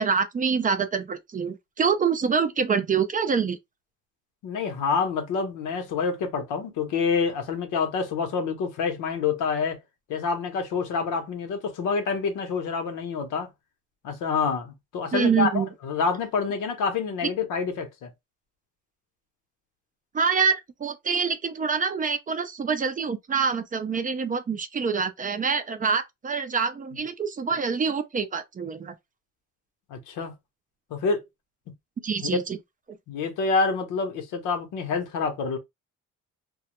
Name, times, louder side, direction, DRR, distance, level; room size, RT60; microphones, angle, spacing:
voice 1, 0.0-3.6 15.1-15.7 20.1-28.9 32.0-32.6 32.9-33.0, right 6 dB, 30° right, 0.4 m, -26 dB
voice 2, 4.4-9.8 10.1-13.5 14.0-18.1 29.9-30.3 30.9-31.2 32.2-32.4 33.1-35.6, left 5 dB, 85° left, 0.8 m, -27 dB
2.2 x 2.0 x 2.9 m
cardioid pair, 90°, 30 cm